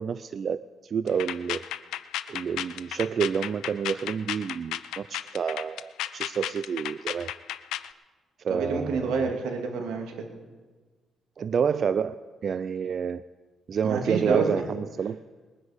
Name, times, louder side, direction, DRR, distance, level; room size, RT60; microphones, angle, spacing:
voice 1, 0.0-1.6 2.3-7.3 8.4-9.2 11.4-12.1 12.4-13.2 13.7-15.2, right 7 dB, 50° right, 14 dB, 0.4 m, -29 dB
sound 1, 1.1-7.9, left 12 dB, 85° left, 0.5 m, -34 dB
voice 2, 8.5-10.2 13.8-14.6, right 4 dB, 90° right, 2 dB, 2.5 m, -27 dB
21.0 x 9.8 x 5.2 m, 1.4 s
cardioid pair, 90°, 0 cm